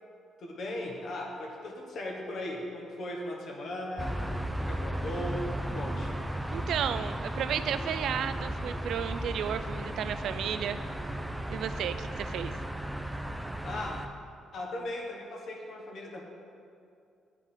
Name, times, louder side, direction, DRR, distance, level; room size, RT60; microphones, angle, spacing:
voice 1, 0.4-4.1 4.6-6.1 13.6-13.9 14.5-16.2, left 1 dB, 65° left, -1 dB, 1.3 m, -37 dB
sound 1, 4.0-14.1, right 1 dB, 5° right, 0.5 m, -35 dB
voice 2, 6.5-10.8 11.5-12.5, right 9 dB, 75° right, 12 dB, 0.4 m, -33 dB
8.4 x 5.0 x 5.5 m, 2.4 s
cardioid pair, 90°, 0 cm